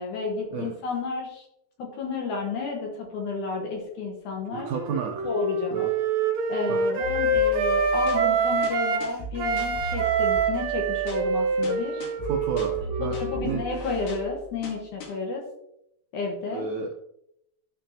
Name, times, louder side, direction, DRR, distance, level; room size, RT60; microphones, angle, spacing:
voice 1, 0.0-1.4 1.8-4.7 5.2-5.9 6.5-12.0 13.1-15.4 16.1-16.7, left 4 dB, 65° left, 0 dB, 2.4 m, -32 dB
Wind instrument woodwind instrument, 4.5-9.0 9.4-13.9, right 3 dB, 60° right, 2.1 m, -26 dB
voice 2, 4.5-5.3 5.7-5.9 6.7-6.8 12.2-13.7 16.5-16.9, right 5 dB, 80° right, 1 dB, 1.7 m, -32 dB
sound 1, 7.0-15.1, right 3 dB, 85° left, 3.5 m, -38 dB
12.0 x 5.8 x 2.8 m, 0.78 s
omnidirectional pair, 4.4 m